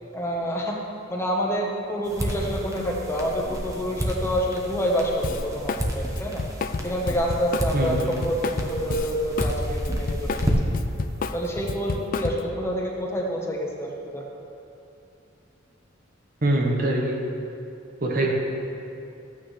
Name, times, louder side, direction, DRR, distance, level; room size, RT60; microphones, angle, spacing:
voice 1, 0.1-0.8 1.1-6.4 6.8-10.4 11.3-14.2, equal, 15° left, -1 dB, 1.0 m, -27 dB
sound 1, 2.0-10.9, equal, 15° right, 1.0 m, -30 dB
Drum kit, 5.2-5.9 6.1-9.5 9.8-12.6, left 4 dB, 45° left, 0.4 m, -30 dB
voice 2, 7.7-8.2 16.4-17.2 18.0-18.3, right 1 dB, 50° right, 0 dB, 1.1 m, -23 dB
13.5 x 8.9 x 3.2 m, 2.8 s
head